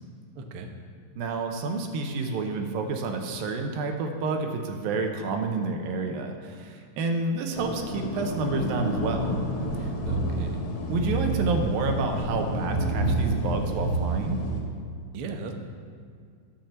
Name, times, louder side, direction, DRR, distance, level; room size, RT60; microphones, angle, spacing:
voice 1, 0.3-0.7 10.0-10.6 15.1-15.5, right 4 dB, 75° right, 3 dB, 1.3 m, -37 dB
voice 2, 1.2-9.4 9.8-9.9 10.9-14.4, right 3 dB, 90° right, 4 dB, 2.8 m, -29 dB
sound 1, 7.5-14.6, right 1 dB, 60° left, 3.2 m, -28 dB
12.0 x 7.2 x 7.2 m, 2.2 s
omnidirectional pair, 4.0 m